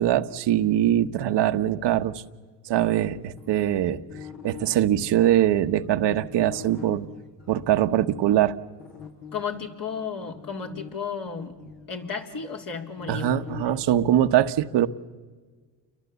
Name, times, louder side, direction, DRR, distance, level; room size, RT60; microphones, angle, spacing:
voice 1, 0.0-2.2 2.6-4.0 4.4-7.1 7.5-8.6 13.1-14.9, right 12 dB, 65° right, 1.3 m, -22 dB
sound 1, 3.4-8.1 8.8-13.7, left 7 dB, 65° left, 6.2 m, -44 dB
voice 2, 9.3-11.5 11.9-13.7, left 6 dB, 45° left, 3.9 m, -33 dB
29.5 x 23.0 x 8.3 m
supercardioid pair, 70°, 45 cm